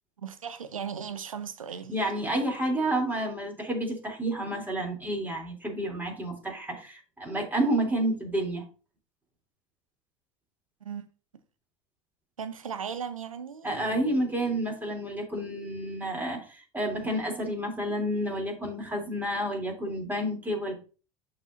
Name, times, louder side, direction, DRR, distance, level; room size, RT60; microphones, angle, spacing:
voice 1, 0.2-2.0 10.8-11.1 12.4-13.9, right 7 dB, 90° right, 0.7 m, -37 dB
voice 2, 1.9-8.6 13.6-20.7, right 1 dB, 10° right, 3.3 m, -30 dB
11.5 x 4.2 x 2.7 m
hypercardioid pair, 75°, 17 cm